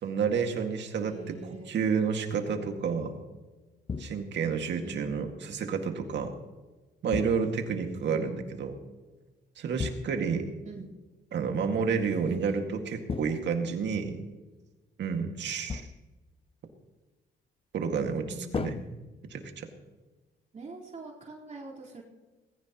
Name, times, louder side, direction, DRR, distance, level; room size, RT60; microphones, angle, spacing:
voice 1, 0.0-3.2 4.0-6.3 7.0-8.7 9.6-10.5 11.3-14.2 15.0-15.9 17.7-18.3 18.5-18.8 19.2-19.7, right 6 dB, 70° right, 4 dB, 2.1 m, -30 dB
voice 2, 1.0-1.7 4.8-5.1 8.1-8.4 10.6-10.9 15.2-15.4 18.0-18.8 20.5-22.0, right 3 dB, 40° right, -4 dB, 4.3 m, -44 dB
sound 1, 3.9-4.5 7.1-7.8 9.8-10.5 13.1-14.0 15.7-16.3 18.5-19.6, left 5 dB, 30° left, 0.6 m, -37 dB
19.0 x 16.0 x 3.1 m, 1.2 s
cardioid pair, 75°, 19 cm